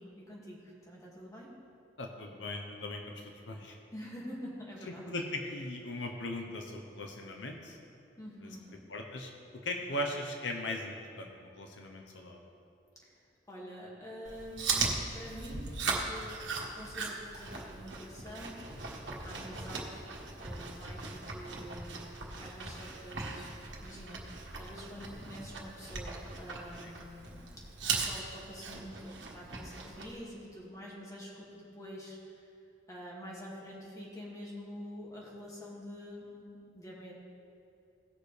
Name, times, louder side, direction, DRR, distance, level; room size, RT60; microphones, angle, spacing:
voice 1, 0.0-1.5 3.9-5.1 8.2-8.8 13.0-13.2 13.5-15.7 16.0-16.4 16.7-20.0 20.4-27.5 28.0-32.4 32.9-37.1, equal, 20° left, -5 dB, 2.2 m, -47 dB
voice 2, 2.0-3.8 5.1-7.8 8.4-8.5 8.9-9.3 9.6-12.4 19.4-19.7 26.8-26.9, left 1 dB, 85° left, 2 dB, 0.9 m, -39 dB
Chewing mastication, 14.2-30.1, right 4 dB, 85° right, 1.5 m, -39 dB
18.0 x 6.4 x 3.4 m, 2.7 s
head